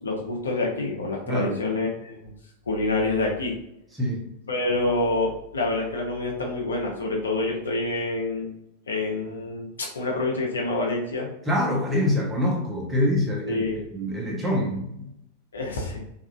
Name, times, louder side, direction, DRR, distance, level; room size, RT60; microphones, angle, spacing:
voice 1, 0.0-2.3 2.7-3.6 4.5-8.5 8.9-11.3 13.5-13.9 15.5-16.0, left 2 dB, 70° left, 0 dB, 0.6 m, -27 dB
voice 2, 1.3-1.6 4.0-4.2 11.5-13.6 13.9-15.1, left 1 dB, 10° right, -2 dB, 0.7 m, -25 dB
2.8 x 2.3 x 2.3 m, 0.79 s
figure-of-eight pair, 90°, 0 cm